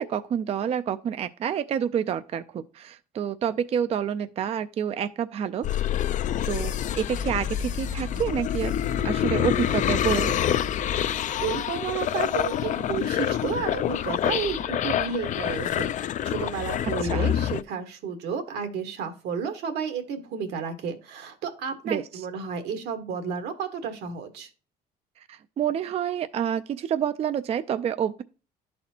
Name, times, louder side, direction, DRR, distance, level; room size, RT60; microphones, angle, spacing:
voice 1, 0.0-5.9 6.5-8.7 9.0-10.6 17.0-17.3 21.9-22.2 25.2-28.2, right 8 dB, 40° right, 0.4 m, -28 dB
sound 1, 5.6-17.6, left 10 dB, 50° left, 0.4 m, -27 dB
voice 2, 11.4-24.5, right 6 dB, 80° right, 1.4 m, -32 dB
11.5 x 4.2 x 2.8 m
cardioid pair, 110°, 17 cm